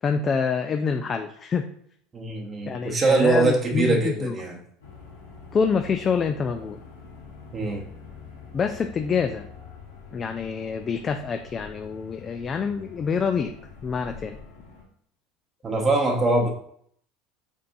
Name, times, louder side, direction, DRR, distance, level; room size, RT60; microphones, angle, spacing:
voice 1, 0.0-1.7 2.7-4.3 5.5-6.8 8.5-9.5 10.1-13.5 13.8-14.4, left 6 dB, 35° left, 6 dB, 0.4 m, -26 dB
voice 2, 2.1-4.6 7.5-7.8 15.6-16.5, right 3 dB, 30° right, -1 dB, 0.8 m, -22 dB
sound 1, 4.8-14.8, left 5 dB, 85° left, 1.1 m, -45 dB
5.2 x 3.2 x 2.6 m, 0.66 s
hypercardioid pair, 80°, 0 cm